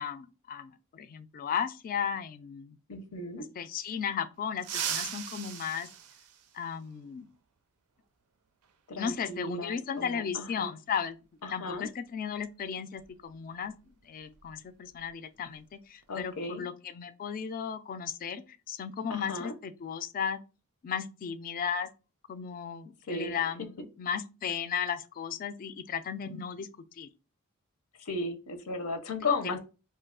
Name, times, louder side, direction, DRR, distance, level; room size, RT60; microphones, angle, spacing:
voice 1, 0.0-2.8 3.6-5.9 6.5-7.3 9.0-11.2 11.5-13.7 14.0-20.4 20.8-21.9 22.3-26.7 26.9-27.1, left 7 dB, 40° left, 0.3 m, -35 dB
voice 2, 2.9-3.5 8.9-10.7 11.4-11.9 16.1-16.6 19.1-19.5 23.1-23.4 28.0-29.6, left 3 dB, 85° left, 0.6 m, -35 dB
sound 1, 4.6-7.0 8.6-8.7 10.0-10.1 11.7-11.8 12.2-12.4 12.9-15.1 15.3-15.6 16.0-16.5, right 9 dB, 90° right, 0.4 m, -39 dB
2.6 x 2.3 x 3.5 m
head